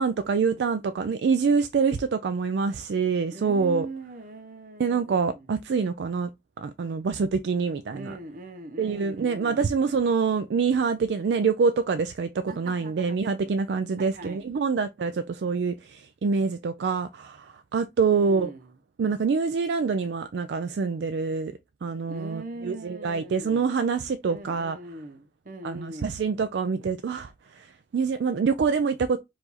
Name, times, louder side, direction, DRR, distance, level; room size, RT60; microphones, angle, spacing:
voice 1, 0.0-3.9 4.8-6.3 6.6-8.2 8.8-18.5 19.0-24.8 25.6-29.2, right 5 dB, 70° right, 0.4 m, -26 dB
voice 2, 3.3-5.5 7.9-9.8 12.5-13.2 14.0-14.5 18.1-18.7 22.1-23.6 24.2-26.2, right 2 dB, 50° right, 0.8 m, -41 dB
4.7 x 2.6 x 4.0 m
head